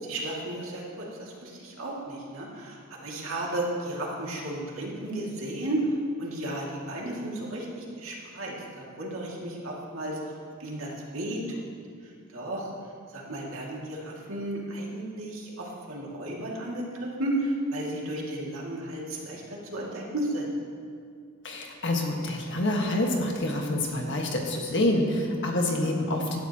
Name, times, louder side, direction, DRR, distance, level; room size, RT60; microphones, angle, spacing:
voice 1, 0.0-5.8 6.2-10.3 10.6-11.7 12.3-12.7 13.1-19.4 19.7-20.5 25.8-25.9, right 1 dB, 75° right, -3 dB, 2.3 m, -34 dB
voice 2, 21.4-26.4, left 1 dB, 60° left, 1 dB, 1.6 m, -27 dB
16.0 x 11.5 x 3.0 m, 2.2 s
head